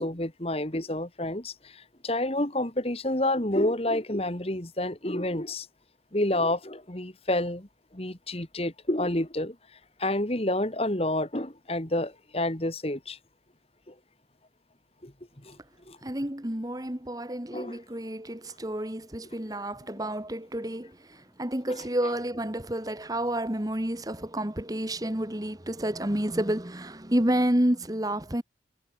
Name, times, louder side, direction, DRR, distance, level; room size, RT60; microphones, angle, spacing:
voice 1, 0.0-5.7 6.1-7.7 7.9-9.6 10.0-13.2 13.9-14.0 15.0-15.1 15.4-15.6 15.9-16.0 17.5-17.8, left 1 dB, 35° left, 2.4 m, -29 dB
voice 2, 16.0-28.4, right 1 dB, 20° right, 1.7 m, -30 dB
head